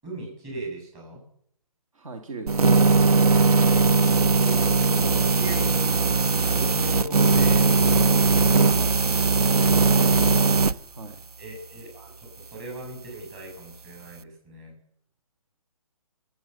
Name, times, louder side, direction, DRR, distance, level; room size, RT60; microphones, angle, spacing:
voice 1, 0.0-1.2 3.7-3.9 4.1-8.8 11.4-14.8, right 1 dB, 20° right, 0 dB, 7.3 m, -39 dB
voice 2, 1.9-2.8 8.7-9.0 9.9-10.6 10.9-11.2, right 3 dB, 65° right, 4 dB, 2.2 m, -39 dB
sound 1, 2.5-10.7, right 4 dB, 85° right, 0.8 m, -19 dB
22.0 x 8.8 x 6.6 m, 0.66 s
hypercardioid pair, 155°, 19 cm